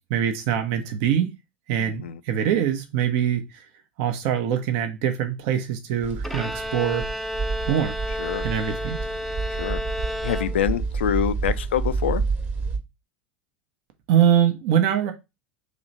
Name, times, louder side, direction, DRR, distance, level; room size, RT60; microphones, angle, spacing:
voice 1, 0.1-1.3 1.7-3.7 4.0-7.1 7.7-8.0 8.4-9.0 14.1-15.1, right 9 dB, 55° right, 0.7 m, -23 dB
voice 2, 1.8-2.2 8.2-8.5 9.6-9.8 10.2-12.2, left 9 dB, 75° left, 0.4 m, -26 dB
sound 1, 6.0-12.8, right 4 dB, 25° right, 1.1 m, -29 dB
Bowed string instrument, 6.2-11.0, left 1 dB, ahead, 0.4 m, -32 dB
3.2 x 3.0 x 3.9 m
figure-of-eight pair, 85°, 6 cm